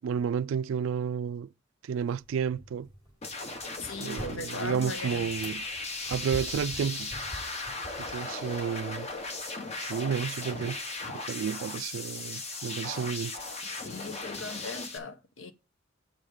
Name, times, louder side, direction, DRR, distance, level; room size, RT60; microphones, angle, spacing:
voice 1, 0.0-1.5 1.8-2.9 4.0-5.6 6.1-7.1 8.0-9.1 9.8-10.8 11.1-13.4, right 7 dB, 80° right, 0.3 m, -31 dB
sound 1, 2.2-9.2, right 1 dB, 15° left, 3.5 m, -46 dB
sound 2, 3.2-15.0, left 3 dB, 30° left, 0.9 m, -37 dB
voice 2, 3.8-5.3 11.3-11.4 13.6-15.5, left 3 dB, 80° left, 0.8 m, -39 dB
8.0 x 5.4 x 5.0 m
head